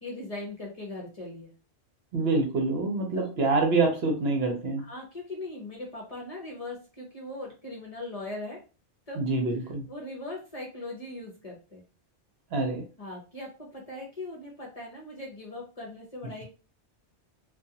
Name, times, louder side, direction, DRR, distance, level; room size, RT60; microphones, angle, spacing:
voice 1, 0.0-1.5 3.1-3.3 4.8-8.6 9.1-9.2 9.9-11.8 13.0-16.4, left 2 dB, 40° left, -3 dB, 0.7 m, -39 dB
voice 2, 2.1-4.9 9.2-9.8 12.5-12.9, right 3 dB, 65° right, 2 dB, 0.9 m, -26 dB
2.4 x 2.2 x 2.7 m, 0.34 s
omnidirectional pair, 1.2 m